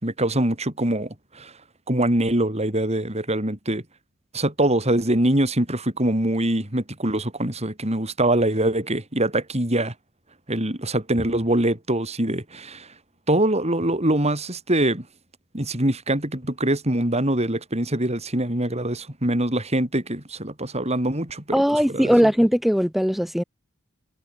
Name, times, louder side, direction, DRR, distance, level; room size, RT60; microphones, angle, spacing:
voice 1, 0.0-1.1 1.3-1.5 1.9-3.8 4.3-9.9 10.5-12.9 13.3-15.0 15.5-21.6 21.9-22.1, right 1 dB, 30° right, 4.4 m, -23 dB
voice 2, 21.5-23.4, equal, ahead, 2.9 m, -19 dB
head